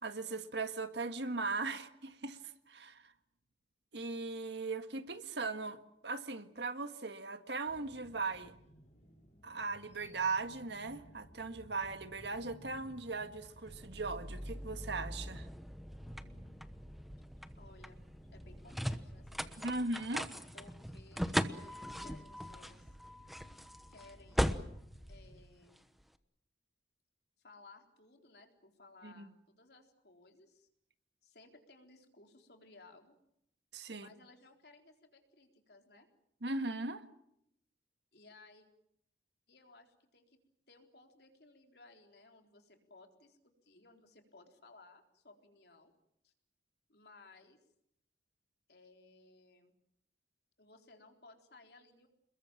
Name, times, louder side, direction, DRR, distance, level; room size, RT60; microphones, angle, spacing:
voice 1, 0.0-2.4 2.7-3.1 3.9-8.5 9.4-15.5 19.6-20.3 29.0-29.3 33.7-34.1 36.4-37.0, right 3 dB, 70° right, 1.8 m, -38 dB
sound 1, 7.7-25.4, equal, 40° left, 5.3 m, -60 dB
sound 2, 13.7-26.0, equal, ahead, 1.1 m, -40 dB
voice 2, 17.6-18.0 18.3-19.8 20.5-22.9 23.9-24.4 25.1-25.8 27.4-30.7 31.2-33.1 33.9-36.1 38.1-38.7 39.5-40.4 40.7-45.9 46.2-46.3 46.9-47.6 48.7-49.7 50.6-52.1, left 3 dB, 60° left, 4.0 m, -60 dB
28.0 x 21.5 x 7.5 m
head